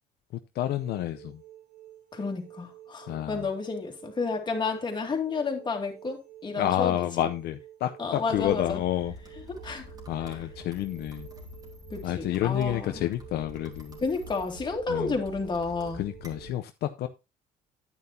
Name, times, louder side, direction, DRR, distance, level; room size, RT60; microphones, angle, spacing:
voice 1, 0.5-1.4 3.1-3.5 6.6-9.1 10.1-11.3 12.0-14.0 14.9-15.2 15.9-17.1, left 12 dB, 70° left, 0.7 m, -29 dB
sound 1, 0.6-16.5, right 13 dB, 80° right, 6.3 m, -51 dB
voice 2, 2.1-7.0 8.0-8.8 9.5-9.9 11.9-13.0 14.0-16.1, left 4 dB, 25° left, 2.4 m, -31 dB
sound 2, 8.3-16.5, equal, 25° right, 3.0 m, -46 dB
9.7 x 9.1 x 2.7 m
cardioid pair, 110°, 17 cm